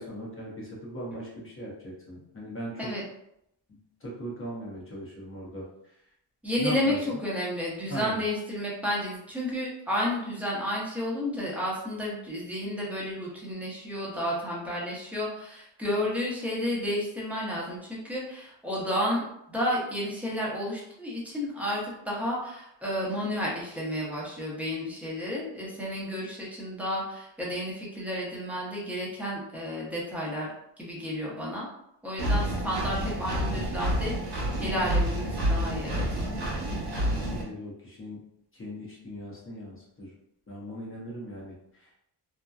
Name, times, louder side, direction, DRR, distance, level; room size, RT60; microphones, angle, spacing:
voice 1, 0.0-2.9 3.7-6.0 6.6-7.0 7.3-7.5 7.9-8.2 37.0-38.2 38.5-40.1 40.5-42.0, equal, 30° left, -5 dB, 0.8 m, -39 dB
voice 2, 6.4-30.5 30.8-31.7 32.0-36.2, left 1 dB, 5° right, -6 dB, 0.8 m, -31 dB
Engine, 32.2-37.4, equal, 60° right, 0.8 m, -28 dB
2.6 x 2.1 x 2.3 m, 0.79 s
cardioid pair, 115°, 44 cm